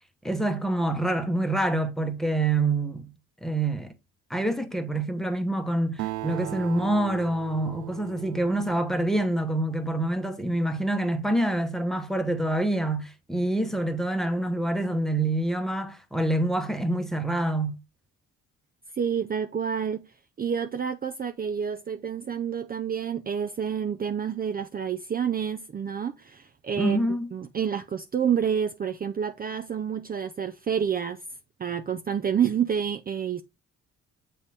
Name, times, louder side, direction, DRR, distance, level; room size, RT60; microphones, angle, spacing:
voice 1, 0.2-3.1 3.4-3.9 4.3-17.7 26.8-27.3, right 1 dB, ahead, 1.0 m, -26 dB
Acoustic guitar, 6.0-9.8, right 16 dB, 80° right, 0.5 m, -38 dB
voice 2, 19.0-20.1 20.4-27.0 27.3-31.2 31.6-33.4, right 7 dB, 30° right, 0.5 m, -28 dB
7.3 x 3.5 x 4.2 m
cardioid pair, 90°, 30 cm